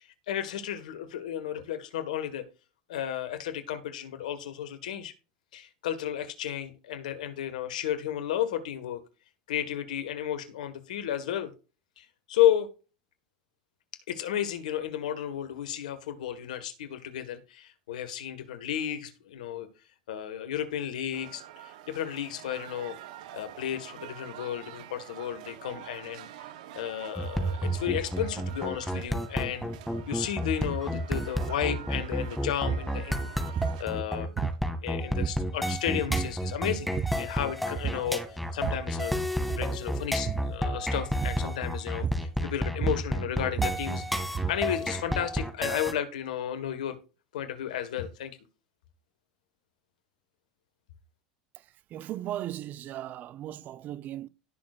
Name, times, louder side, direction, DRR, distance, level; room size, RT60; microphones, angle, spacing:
voice 1, 0.0-2.4 2.9-5.1 5.5-9.0 9.5-11.5 12.0-12.7 14.1-19.7 20.1-23.0 23.3-26.3 26.7-29.7 30.1-34.3 34.8-39.2 39.5-44.0 44.5-47.0 47.3-48.4, left 10 dB, 75° left, 1.6 m, -33 dB
sound 1, 21.1-33.8, right 12 dB, 70° right, 1.0 m, -46 dB
sound 2, 27.2-45.9, equal, ahead, 2.2 m, -31 dB
sound 3, 32.6-32.9 33.6-33.9 34.4-34.9 35.2-35.7 36.1-36.4 36.8-37.3 37.8-38.1 38.4-39.0 39.4-39.8 40.3-40.6 41.2-41.6 42.0-42.4 42.7-44.7, right 7 dB, 30° right, 0.3 m, -32 dB
voice 2, 51.9-54.3, right 12 dB, 45° right, 0.7 m, -37 dB
17.5 x 6.4 x 2.5 m
hypercardioid pair, 85°, 4 cm